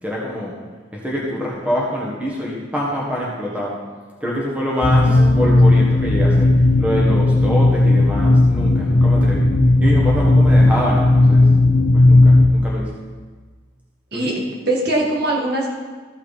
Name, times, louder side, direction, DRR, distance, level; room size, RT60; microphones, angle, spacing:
voice 1, 0.0-0.6 0.9-3.8 4.2-6.5 6.8-9.5 9.8-11.4 11.9-12.9 14.1-14.3, equal, 5° right, -4 dB, 1.6 m, -25 dB
sound 1, 4.8-12.5, left 2 dB, 35° left, 0.7 m, -14 dB
voice 2, 5.1-5.6 14.1-15.7, right 1 dB, 55° right, -2 dB, 1.8 m, -22 dB
14.0 x 6.2 x 4.2 m, 1.4 s
head